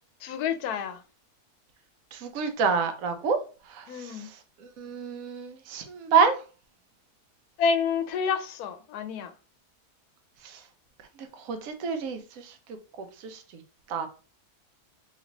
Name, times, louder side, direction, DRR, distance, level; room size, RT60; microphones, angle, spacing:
voice 1, 0.2-1.0 3.9-4.3 7.6-9.3, left 6 dB, 80° left, 1.1 m, -28 dB
voice 2, 2.1-3.4 3.7-4.1 4.8-6.4 11.5-12.2 13.2-13.4 13.9-14.1, right 5 dB, 70° right, 1.1 m, -26 dB
3.2 x 3.1 x 3.9 m
omnidirectional pair, 1.6 m